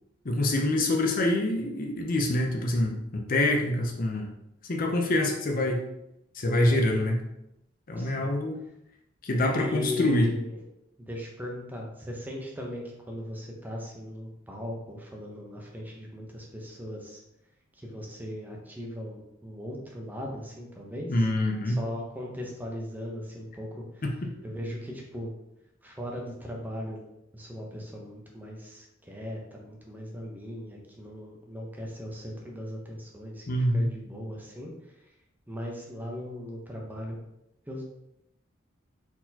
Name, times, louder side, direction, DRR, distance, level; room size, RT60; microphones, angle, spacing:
voice 1, 0.2-4.3 4.7-5.8 6.3-7.2 7.9-8.6 9.2-10.3 21.1-21.8 24.0-24.1 33.5-33.9, left 1 dB, 45° left, 2 dB, 0.6 m, -25 dB
voice 2, 8.0-8.3 9.5-10.6 11.0-17.2 17.7-21.3 21.7-24.0 24.4-25.3 25.8-27.0 27.3-33.5 33.7-35.1 35.5-37.2 37.7-37.8, left 1 dB, 10° right, -1 dB, 0.7 m, -38 dB
4.4 x 4.0 x 2.8 m, 0.84 s
head